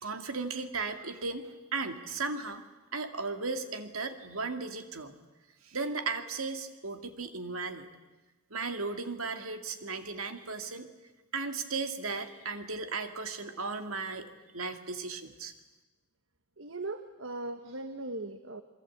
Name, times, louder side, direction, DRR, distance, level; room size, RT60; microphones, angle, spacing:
voice 1, 0.0-2.6 2.9-5.1 5.7-7.9 8.5-10.9 11.3-14.3 14.5-15.5, right 4 dB, 90° right, 7 dB, 2.3 m, -36 dB
voice 2, 16.6-18.6, right 2 dB, 65° right, 8 dB, 1.3 m, -39 dB
27.5 x 23.0 x 8.6 m, 1.1 s
head